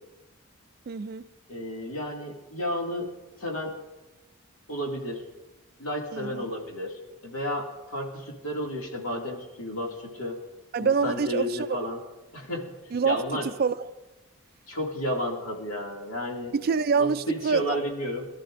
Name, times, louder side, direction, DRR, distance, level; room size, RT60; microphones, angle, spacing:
voice 1, 0.9-1.3 6.1-6.4 10.7-11.8 12.9-13.9 16.5-17.8, right 5 dB, 45° right, 0.3 m, -26 dB
voice 2, 1.5-3.1 3.4-3.7 4.7-5.2 5.8-10.4 10.8-12.0 12.3-12.6 13.0-13.5 14.7-16.5 17.0-18.3, left 1 dB, 85° left, 2.2 m, -32 dB
23.0 x 12.5 x 2.5 m
head